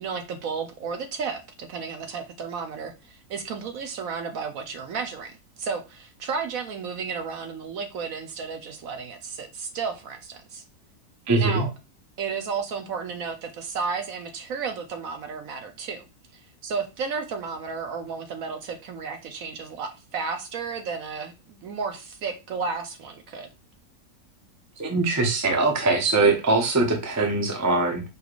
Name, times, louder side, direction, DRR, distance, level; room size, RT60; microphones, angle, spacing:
voice 1, 0.0-10.6 11.4-11.7 12.2-16.1 16.3-23.5, right 5 dB, 65° right, 1.0 m, -33 dB
voice 2, 11.3-11.7 24.8-28.0, right 3 dB, 20° right, 0.5 m, -22 dB
4.9 x 3.2 x 2.4 m
omnidirectional pair, 1.7 m